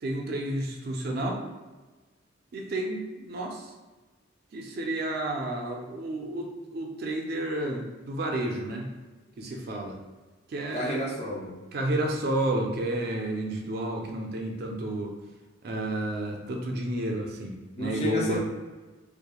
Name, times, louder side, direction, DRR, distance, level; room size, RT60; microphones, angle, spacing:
voice 1, 0.0-1.4 2.5-3.7 4.5-8.9 9.4-10.0 10.5-11.0 11.7-15.1 15.6-18.4, right 1 dB, 50° right, 2 dB, 0.3 m, -31 dB
voice 2, 10.7-11.6 17.8-18.4, equal, 35° left, -2 dB, 0.4 m, -31 dB
2.9 x 2.0 x 2.2 m, 1.2 s
head